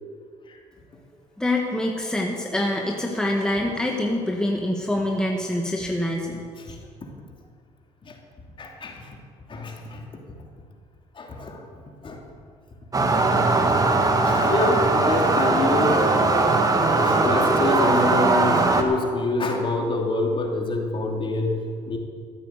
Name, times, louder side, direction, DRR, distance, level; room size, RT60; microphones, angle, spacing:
voice 1, 1.4-6.5, left 1 dB, 5° left, 0 dB, 1.7 m, -25 dB
voice 2, 6.6-7.1 8.0-8.2 8.6-9.2 9.5-10.0 11.1-11.6 12.0-12.2 13.7-14.0 14.2-16.1 16.8-22.0, left 2 dB, 35° left, 1 dB, 2.8 m, -27 dB
sound 1, 12.9-18.8, right 3 dB, 25° right, 1.7 m, -20 dB
14.0 x 9.0 x 8.1 m, 2.1 s
cardioid pair, 90°, 14 cm